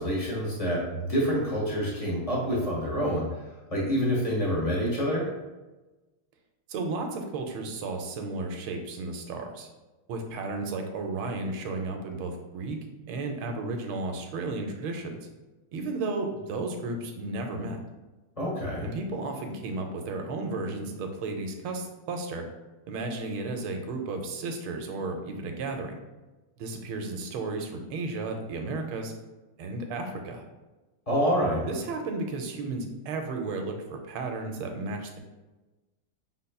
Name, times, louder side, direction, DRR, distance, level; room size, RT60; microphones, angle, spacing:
voice 1, 0.0-5.3 18.4-18.9 31.1-31.7, equal, 35° left, -4 dB, 0.6 m, -27 dB
voice 2, 6.7-9.7 10.1-12.8 13.1-15.3 15.7-17.8 18.8-22.5 22.9-26.0 26.6-29.1 29.6-30.4 31.7-35.2, right 3 dB, 80° right, 4 dB, 1.5 m, -33 dB
5.4 x 4.0 x 2.3 m, 1.1 s
omnidirectional pair, 2.3 m